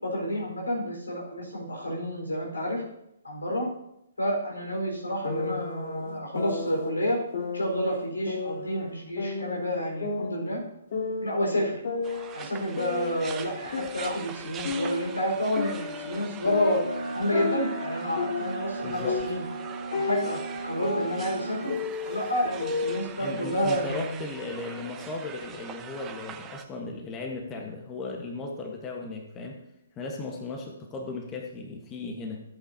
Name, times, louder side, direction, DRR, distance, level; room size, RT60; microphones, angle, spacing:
voice 1, 0.0-2.8 3.2-3.7 4.2-7.2 7.5-10.6 11.2-11.7 12.3-16.8 17.1-19.4 19.9-21.8 22.1-24.3, equal, 80° left, -1 dB, 4.6 m, -29 dB
sound 1, 5.2-6.9 7.3-8.9 9.2-11.4 11.8-14.3 14.6-18.8 19.0-23.0, left 4 dB, 50° left, 1.8 m, -33 dB
sound 2, 12.0-26.6, right 8 dB, 20° right, 0.7 m, -43 dB
Wind instrument woodwind instrument, 16.8-21.7, right 3 dB, 80° right, 0.6 m, -36 dB
voice 2, 18.8-19.2 23.2-29.6 30.0-32.4, left 3 dB, 20° left, 2 dB, 1.3 m, -36 dB
15.0 x 8.4 x 2.8 m, 0.83 s
figure-of-eight pair, 130°, 0 cm